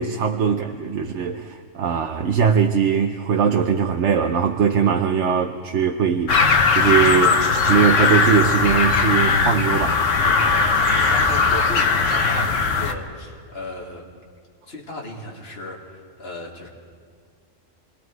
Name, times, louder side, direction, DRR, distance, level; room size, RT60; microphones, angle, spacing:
voice 1, 0.0-10.0 10.2-10.4, right 7 dB, 65° right, 4 dB, 1.1 m, -21 dB
sound 1, 6.3-12.9, left 4 dB, 70° left, 1.6 m, -19 dB
voice 2, 10.4-14.1 14.7-16.7, left 1 dB, 50° left, -2 dB, 2.7 m, -35 dB
29.0 x 22.0 x 4.7 m, 2.1 s
omnidirectional pair, 1.4 m